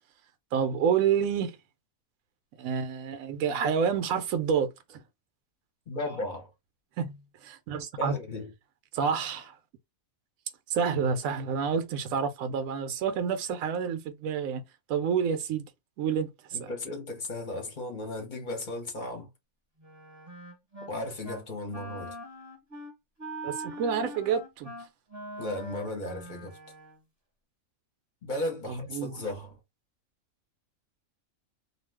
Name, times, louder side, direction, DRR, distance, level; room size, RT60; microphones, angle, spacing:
voice 1, 0.5-1.6 2.6-5.0 7.0-8.2 8.9-9.5 10.7-14.6 14.9-15.6 16.0-16.3 16.6-16.7 23.4-24.7 28.7-29.2, right 6 dB, 75° right, 1.0 m, -28 dB
voice 2, 5.9-6.5 8.0-8.5 16.5-19.3 20.9-22.2 25.4-26.6 28.2-29.6, left 2 dB, 40° left, 0.9 m, -35 dB
Wind instrument woodwind instrument, 19.8-20.9 21.2-21.5 21.7-27.0, right 1 dB, 15° right, 0.8 m, -42 dB
2.5 x 2.3 x 3.3 m
omnidirectional pair, 1.5 m